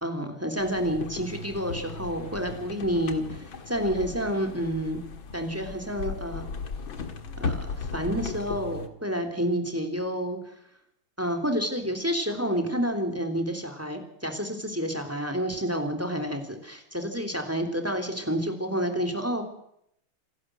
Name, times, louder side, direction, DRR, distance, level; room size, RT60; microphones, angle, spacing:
voice 1, 0.0-5.0 5.3-6.4 7.4-10.4 11.2-19.4, equal, 5° right, 6 dB, 3.2 m, -29 dB
sound 1, 0.6-8.9, left 4 dB, 65° left, 2.6 m, -36 dB
28.0 x 11.5 x 7.8 m, 0.75 s
omnidirectional pair, 2.3 m